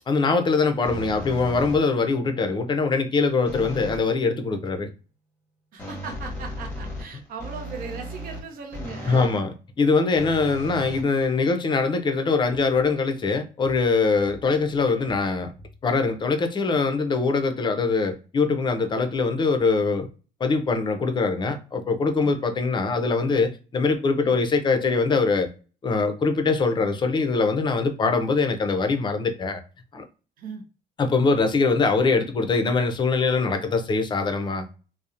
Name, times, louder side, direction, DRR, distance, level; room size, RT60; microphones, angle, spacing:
voice 1, 0.1-4.9 9.1-15.5 15.8-20.1 20.4-25.5 25.8-29.6 29.9-30.0 31.0-34.6, left 4 dB, 30° left, 0.5 m, -23 dB
sound 1, 0.8-2.1 3.5-4.1 5.8-9.4 10.2-11.6, left 1 dB, 10° left, 0.9 m, -36 dB
voice 2, 5.7-9.5 22.2-22.4 24.2-24.5 30.4-30.6, right 4 dB, 60° right, 0.6 m, -38 dB
2.8 x 2.0 x 2.4 m
cardioid pair, 110°, 17 cm